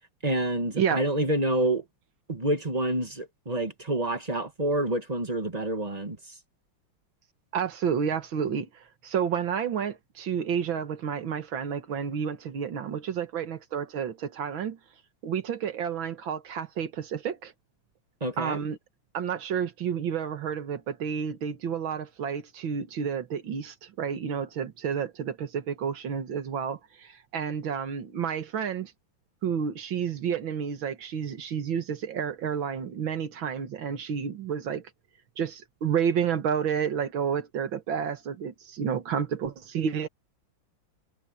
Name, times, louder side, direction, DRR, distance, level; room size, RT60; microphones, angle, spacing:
voice 1, 0.2-1.8 2.3-6.2 18.2-18.6, right 1 dB, 20° right, 1.5 m, -28 dB
voice 2, 7.5-14.8 15.2-17.5 18.4-18.8 19.1-28.9 29.4-34.9 35.4-40.1, right 7 dB, 85° right, 2.3 m, -30 dB
omnidirectional pair, 2.1 m